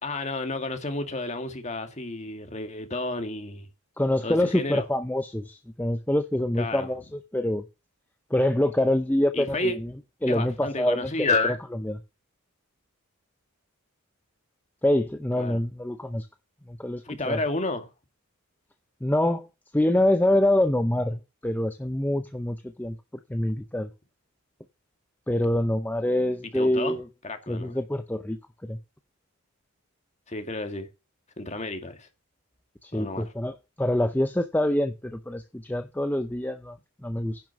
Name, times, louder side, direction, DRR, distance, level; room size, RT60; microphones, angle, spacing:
voice 1, 0.0-3.7 4.2-4.8 6.6-6.9 9.3-9.7 10.3-11.6 15.4-15.6 17.0-17.9 26.5-27.0 27.2-27.7 30.3-30.9 31.4-32.1 32.9-33.2, left 2 dB, 30° left, 1.9 m, -30 dB
voice 2, 4.0-7.7 8.3-9.9 10.2-11.3 11.9-12.0 14.8-16.3 16.7-17.4 19.0-19.5 19.7-23.0 23.3-23.9 25.3-27.0 27.5-28.8 32.8-37.4, left 1 dB, 10° left, 0.6 m, -25 dB
10.5 x 6.1 x 7.3 m
head